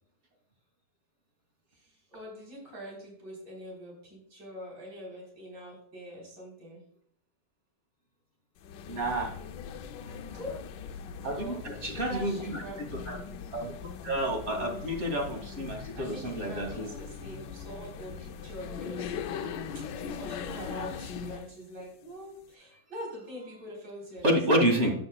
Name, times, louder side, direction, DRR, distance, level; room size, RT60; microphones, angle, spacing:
voice 1, 1.7-6.8 10.0-10.6 11.1-13.0 15.9-19.9 20.2-24.9, equal, 70° right, -3 dB, 4.3 m, -44 dB
sound 1, 8.6-21.5, left 7 dB, 85° left, 1.3 m, -40 dB
voice 2, 8.9-9.3 11.2-11.6 11.8-12.6 13.1-13.2 13.5-13.7 14.0-16.9 24.2-24.9, right 1 dB, 40° right, 1 dB, 2.3 m, -28 dB
12.0 x 9.6 x 2.3 m, 0.68 s
omnidirectional pair, 1.9 m